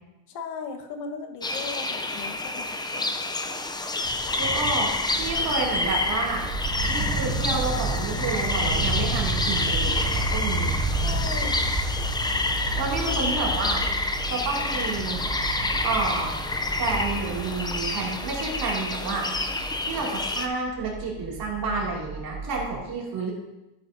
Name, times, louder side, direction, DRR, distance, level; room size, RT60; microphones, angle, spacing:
voice 1, 0.3-3.2 11.0-11.7, left 5 dB, 55° left, 4 dB, 1.4 m, -37 dB
sound 1, 1.4-20.5, left 2 dB, 10° left, 0.5 m, -28 dB
voice 2, 4.4-6.4 6.9-10.7 12.8-13.8 14.3-15.2 15.8-16.4 16.7-19.3 19.5-23.3, right 3 dB, 50° right, -3 dB, 2.7 m, -30 dB
sound 2, 4.9-22.8, right 2 dB, 90° right, 3.3 m, -31 dB
12.0 x 8.7 x 2.7 m, 0.99 s
cardioid pair, 120°, 47 cm